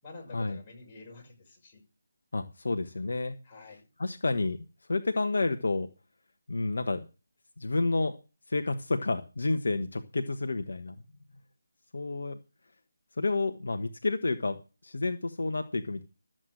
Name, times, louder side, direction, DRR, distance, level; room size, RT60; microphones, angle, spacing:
voice 1, 0.0-1.8 3.4-3.9, left 3 dB, 20° left, -4 dB, 6.3 m, -48 dB
voice 2, 2.3-3.4 4.0-5.9 6.5-7.1 7.6-8.2 8.5-11.0 11.9-12.4 13.2-14.6 14.8-16.0, left 3 dB, 65° left, 7 dB, 1.2 m, -30 dB
13.0 x 7.7 x 6.5 m, 0.33 s
figure-of-eight pair, 155°, 0 cm